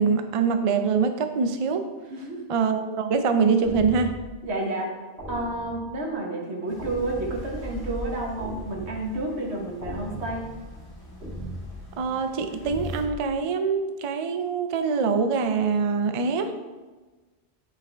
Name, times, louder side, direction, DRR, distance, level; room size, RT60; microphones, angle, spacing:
voice 1, 0.0-1.9 2.5-4.2 12.0-16.5, right 5 dB, 45° right, 7 dB, 0.4 m, -24 dB
voice 2, 2.1-2.5 4.4-4.9 5.3-10.4, right 2 dB, 90° right, -1 dB, 1.5 m, -30 dB
sound 1, 3.6-4.4 5.2-6.0 6.8-7.6 8.4-9.2 9.8-10.6 11.2-11.8 12.6-13.2, equal, 65° right, 2.4 m, -37 dB
sound 2, 6.7-13.0, equal, 20° left, 1.3 m, -42 dB
8.3 x 4.9 x 3.4 m, 1.3 s
omnidirectional pair, 1.1 m